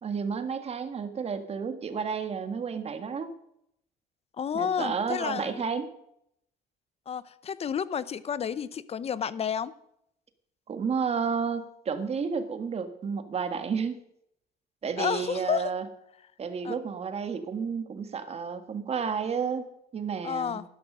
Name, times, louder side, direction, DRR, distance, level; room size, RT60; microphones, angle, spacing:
voice 1, 0.0-3.3 4.5-5.9 10.7-14.0 14.8-15.9 16.4-19.6 19.9-20.6, right 6 dB, 35° right, 9 dB, 1.7 m, -31 dB
voice 2, 4.4-5.6 7.1-9.7 15.0-15.6 16.6-16.8 20.2-20.6, left 7 dB, 35° left, 17 dB, 0.7 m, -31 dB
12.0 x 11.0 x 6.2 m, 0.76 s
cardioid pair, 110°, 17 cm